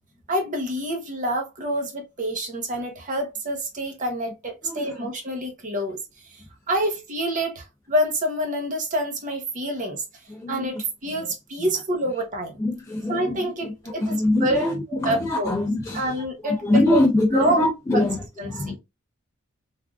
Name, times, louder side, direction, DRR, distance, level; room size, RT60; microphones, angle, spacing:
voice 1, 0.3-6.0 6.3-10.0 10.5-12.6 13.1-15.6 15.9-17.0 17.3-18.1 18.4-18.7, right 1 dB, 40° right, 0.8 m, -27 dB
voice 2, 12.6-13.4 14.1-14.8 15.0-16.0 16.6-18.2 18.5-18.7, left 1 dB, 15° left, 0.4 m, -22 dB
3.4 x 2.4 x 2.3 m
head